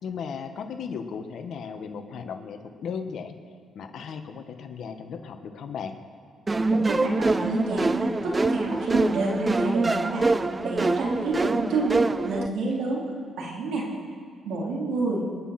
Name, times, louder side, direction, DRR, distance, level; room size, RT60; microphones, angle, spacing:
voice 1, 0.0-3.3 3.7-6.0, left 6 dB, 65° left, 6 dB, 1.4 m, -36 dB
sound 1, 6.5-12.5, right 3 dB, 25° right, 0.5 m, -25 dB
voice 2, 6.7-10.3 10.6-12.0 12.2-13.0 13.4-13.8 14.5-15.2, right 3 dB, 80° right, -3 dB, 3.5 m, -29 dB
27.5 x 9.8 x 4.4 m, 2.2 s
cardioid pair, 90°, 0 cm